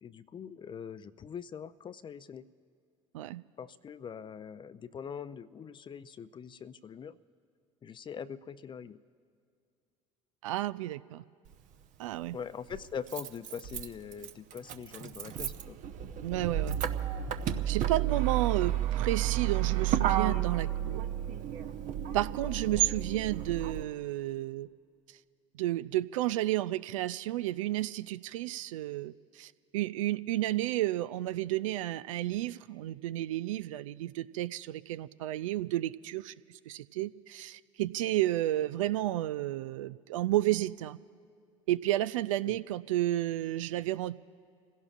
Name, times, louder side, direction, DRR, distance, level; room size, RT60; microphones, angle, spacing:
voice 1, 0.0-2.5 3.6-7.2 7.8-9.0 12.3-15.8 18.7-18.9 42.5-42.6, left 7 dB, 30° left, 15 dB, 0.5 m, -43 dB
voice 2, 10.4-11.2 12.0-12.4 16.2-16.8 17.7-21.0 22.1-24.7 25.5-36.3 36.7-41.0 41.7-44.1, right 15 dB, 70° right, 15 dB, 0.4 m, -32 dB
Motor vehicle (road), 11.5-11.6 12.7-23.8, right 11 dB, 50° right, 0.9 m, -32 dB
29.0 x 16.5 x 2.5 m, 2.2 s
hypercardioid pair, 70°, 17 cm